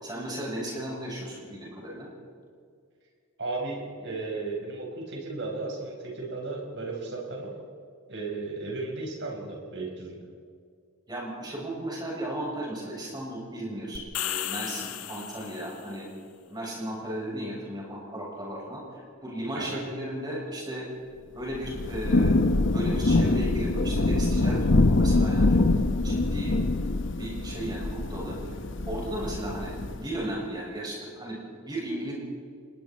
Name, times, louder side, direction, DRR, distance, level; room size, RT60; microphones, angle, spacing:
voice 1, 0.0-2.1 11.1-16.1 16.5-20.9 21.3-22.4 22.7-26.6 27.1-28.6 28.9-32.1, right 1 dB, 20° right, -3 dB, 6.9 m, -35 dB
voice 2, 3.4-7.5 8.1-10.2 19.5-19.8, right 3 dB, 55° right, 0 dB, 5.2 m, -35 dB
sound 1, 14.0-15.9, left 11 dB, 85° left, 1.1 m, -34 dB
Thunder / Rain, 21.5-30.1, left 2 dB, 55° left, 0.9 m, -24 dB
29.0 x 20.5 x 4.6 m, 2.1 s
head